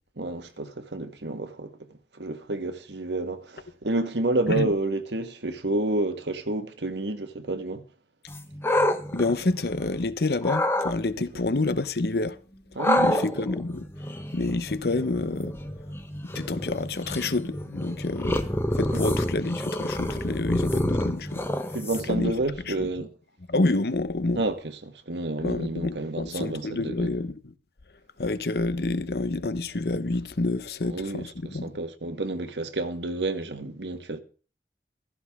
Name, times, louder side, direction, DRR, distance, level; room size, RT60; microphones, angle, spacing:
voice 1, 0.2-1.7 2.1-7.8 12.7-13.3 18.9-19.0 21.7-23.1 24.3-24.6 24.8-27.1 30.9-31.2 31.5-34.2, right 2 dB, 85° right, 1.5 m, -29 dB
sound 1, 8.3-10.0 10.4-10.9 12.8-22.3, left 1 dB, 15° left, 1.0 m, -28 dB
voice 2, 9.1-12.4 13.0-13.8 14.3-15.6 16.2-18.5 18.7-21.5 22.1-22.3 22.7-22.9 23.5-24.4 25.4-27.5 28.2-31.7, left 2 dB, 65° left, 0.9 m, -28 dB
15.0 x 13.5 x 3.6 m
head